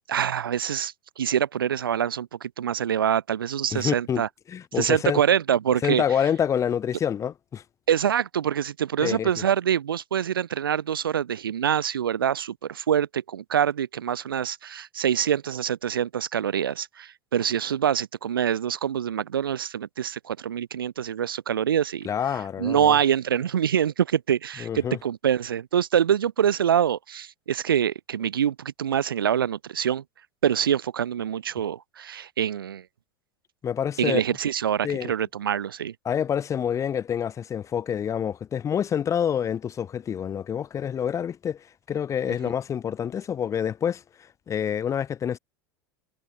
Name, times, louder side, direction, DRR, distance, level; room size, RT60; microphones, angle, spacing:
voice 1, 0.1-4.3 4.8-6.0 7.9-22.1 22.6-30.0 30.4-32.8 34.0-35.9, right 9 dB, 80° right, 1.3 m, -25 dB
voice 2, 3.7-5.2 5.8-7.6 9.0-9.3 22.0-23.0 24.6-25.0 33.6-34.2 34.8-35.1 36.0-45.4, left 8 dB, 25° left, 0.6 m, -27 dB
hypercardioid pair, 85°, 11 cm